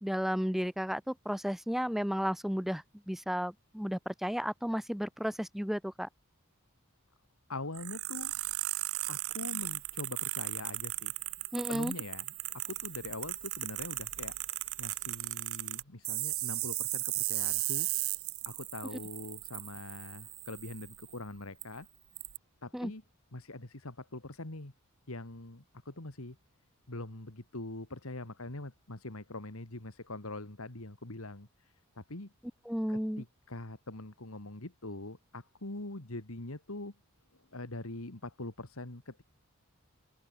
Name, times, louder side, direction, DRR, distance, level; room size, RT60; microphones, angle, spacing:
voice 1, 0.0-6.1 11.5-11.9 22.7-22.9 32.7-33.2, equal, ahead, 0.6 m, -33 dB
voice 2, 7.5-8.4 9.1-11.1 11.5-17.9 18.4-21.9 22.6-23.0 23.3-24.7 25.1-26.4 26.9-32.3 32.9-36.9 37.3-39.2, left 2 dB, 75° left, 2.4 m, -43 dB
sound 1, 7.7-21.1 21.6-21.7 22.2-22.4, right 20 dB, 70° right, 0.6 m, -36 dB
open air
head